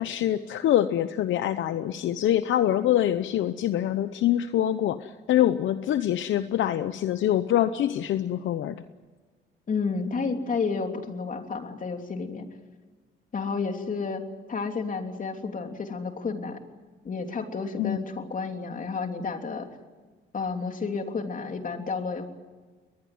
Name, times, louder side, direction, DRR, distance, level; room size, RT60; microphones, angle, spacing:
voice 1, 0.0-8.8 17.8-18.0, left 11 dB, 75° left, 11 dB, 0.9 m, -25 dB
voice 2, 9.7-12.5 13.3-14.2 14.5-16.6 17.0-19.7 20.3-22.3, left 4 dB, 40° left, 5 dB, 3.2 m, -31 dB
21.5 x 21.0 x 9.5 m, 1.4 s
cardioid pair, 90°, 20 cm